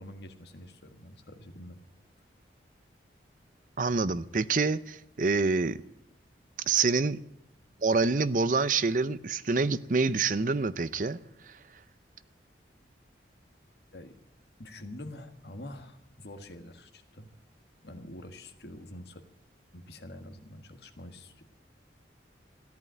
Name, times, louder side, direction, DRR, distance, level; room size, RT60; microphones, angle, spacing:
voice 1, 0.0-1.8 13.9-14.1 14.6-17.4 17.8-19.2 19.7-21.4, left 1 dB, 65° left, 1.6 m, -46 dB
voice 2, 3.8-5.8 6.7-7.2 7.8-11.2, right 4 dB, 45° right, 0.6 m, -26 dB
14.5 x 11.0 x 9.1 m
head